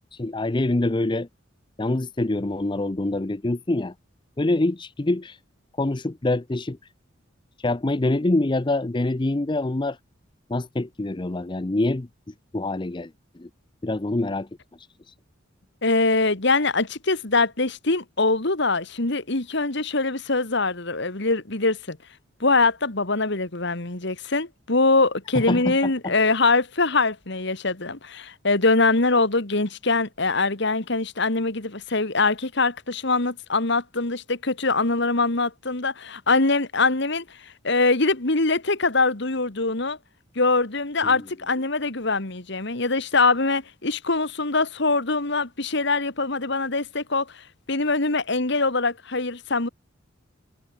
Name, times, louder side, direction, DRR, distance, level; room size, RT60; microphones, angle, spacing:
voice 1, 0.1-1.3 1.8-3.9 4.4-5.4 5.8-6.8 7.6-10.0 10.5-12.1 12.5-13.1 13.4-13.5 13.8-14.5 15.1-15.2 25.3-25.8 26.0-26.1 41.0-41.1, left 2 dB, 25° left, 0.6 m, -25 dB
voice 2, 15.8-22.0 22.4-40.0 40.4-49.7, left 3 dB, 60° left, 2.2 m, -23 dB
head